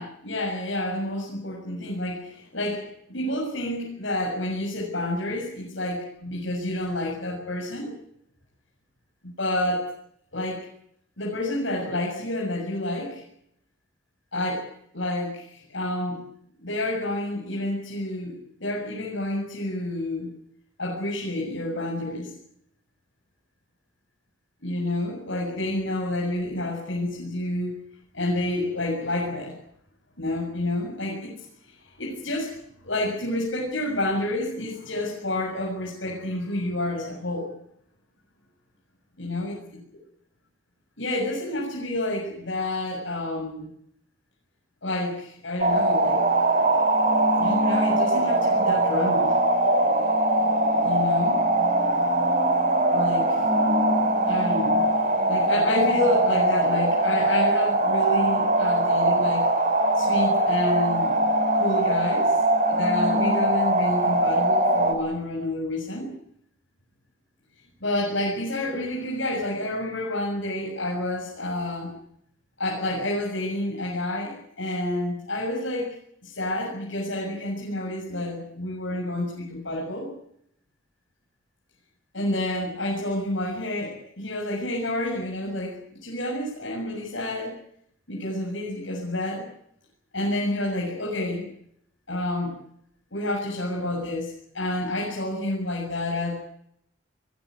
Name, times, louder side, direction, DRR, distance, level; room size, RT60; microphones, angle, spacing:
voice 1, 0.0-7.9 9.2-10.0 10.3-10.6 11.2-13.2 14.3-16.2 16.6-20.3 20.8-22.3 24.6-27.8 28.1-29.6 30.2-31.3 31.7-32.5 32.8-37.5 39.2-39.8 41.0-43.7 44.8-46.2 47.4-49.4 50.8-51.4 52.9-53.4 54.3-54.8 55.3-59.5 59.9-61.2 61.5-62.3 62.7-66.1 67.8-71.9 72.6-75.9 76.2-80.1 82.1-87.6 88.1-89.5 90.1-91.5 92.1-92.5 93.1-96.4, left 1 dB, 70° left, -2 dB, 7.0 m, -29 dB
sound 1, 45.6-64.9, right 1 dB, 40° right, 3.4 m, -22 dB
21.5 x 18.0 x 9.6 m, 0.72 s
head